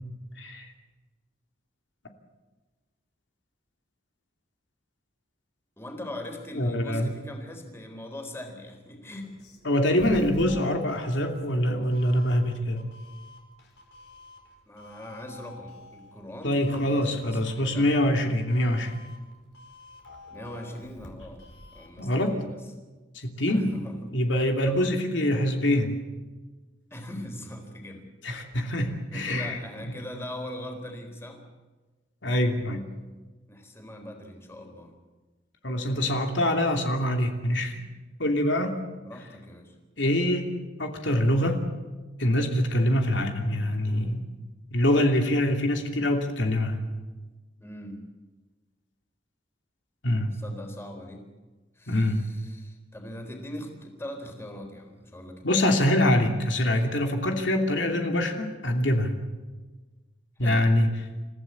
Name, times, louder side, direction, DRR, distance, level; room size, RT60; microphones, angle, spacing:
voice 1, 5.8-9.3 14.7-17.9 20.3-21.4 21.7-22.6 23.5-24.0 24.7-24.9 26.9-28.0 28.6-28.8 29.1-31.4 33.5-35.0 39.0-39.7 43.1-43.3 47.6-48.0 50.3-51.2 51.8-55.6 60.4-60.6, left 1 dB, 15° left, 4 dB, 3.9 m, -41 dB
voice 2, 6.5-7.1 9.6-12.8 16.4-19.0 22.0-22.4 23.1-23.7 24.1-26.0 28.2-29.6 32.2-32.8 35.6-37.8 38.2-38.8 40.0-40.5 40.8-41.6 42.2-44.3 44.7-46.8 50.0-50.3 51.9-52.2 55.4-59.2 60.4-60.9, left 1 dB, 80° left, 3 dB, 2.8 m, -24 dB
Doorbell, 9.2-22.0, left 2 dB, 65° left, 5.0 m, -48 dB
29.0 x 15.5 x 8.5 m, 1.3 s
head